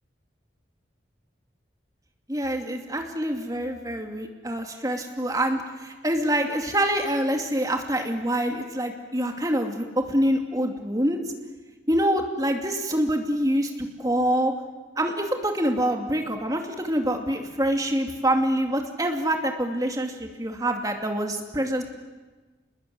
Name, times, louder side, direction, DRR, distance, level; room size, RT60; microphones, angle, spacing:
voice 1, 2.3-11.2 11.9-14.5 15.0-21.8, right 1 dB, 20° right, 3 dB, 2.6 m, -26 dB
28.5 x 21.0 x 9.6 m, 1.3 s
head